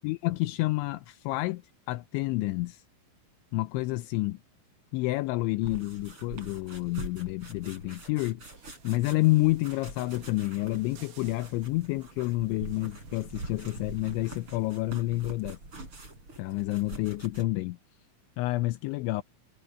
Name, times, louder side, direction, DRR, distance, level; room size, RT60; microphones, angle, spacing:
voice 1, 0.0-1.6 1.9-2.8 3.5-4.4 4.9-8.4 8.8-15.6 16.4-17.8 18.4-19.2, left 19 dB, 85° left, 3.0 m, -29 dB
sound 1, 5.6-17.5, right 2 dB, 25° right, 8.3 m, -44 dB
sound 2, 8.4-17.2, right 8 dB, 75° right, 5.7 m, -59 dB
omnidirectional pair, 5.4 m